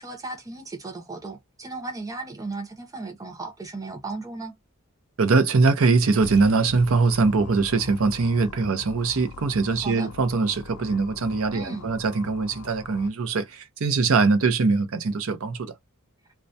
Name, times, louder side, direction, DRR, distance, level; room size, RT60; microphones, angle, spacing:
voice 1, 0.0-4.6 9.8-10.1 11.5-11.9, right 3 dB, 15° right, 0.7 m, -35 dB
voice 2, 5.2-15.7, right 4 dB, 80° right, 0.6 m, -22 dB
sound 1, 6.2-13.1, left 5 dB, 90° left, 0.4 m, -42 dB
2.2 x 2.1 x 2.6 m
head